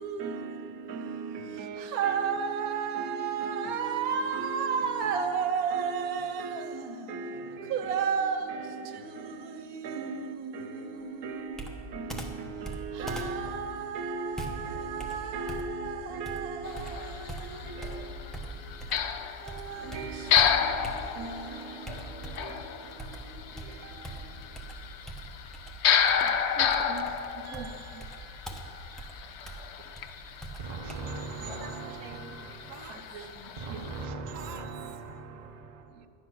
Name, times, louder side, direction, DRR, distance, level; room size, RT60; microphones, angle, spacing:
voice 1, 0.0-24.7 26.1-26.3 31.6-31.7 32.0-32.4 32.9-33.0 33.4-33.5, right 6 dB, 85° right, 1.3 m, -34 dB
Computer keyboard, 11.5-19.2 19.5-21.4 21.9-22.6 23.0-31.0, right 2 dB, ahead, 0.9 m, -41 dB
sound 1, 16.6-34.0, left 8 dB, 60° left, 0.8 m, -32 dB
voice 2, 26.5-28.8 29.8-30.1 30.8-31.8 33.0-35.0 35.9-36.1, right 6 dB, 65° right, 1.0 m, -47 dB
voice 3, 30.6-33.2 33.6-36.1, right 3 dB, 40° right, 0.7 m, -40 dB
11.5 x 9.9 x 6.1 m
omnidirectional pair, 1.5 m